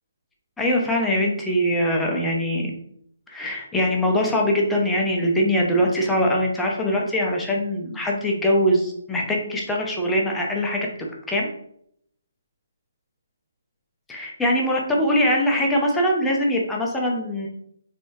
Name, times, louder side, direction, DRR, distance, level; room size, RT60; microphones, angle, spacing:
voice 1, 0.6-2.7 3.3-10.9 11.3-11.5 14.1-17.5, equal, 5° left, -2 dB, 0.7 m, -22 dB
4.2 x 3.3 x 2.7 m, 0.69 s
figure-of-eight pair, 140°, 0 cm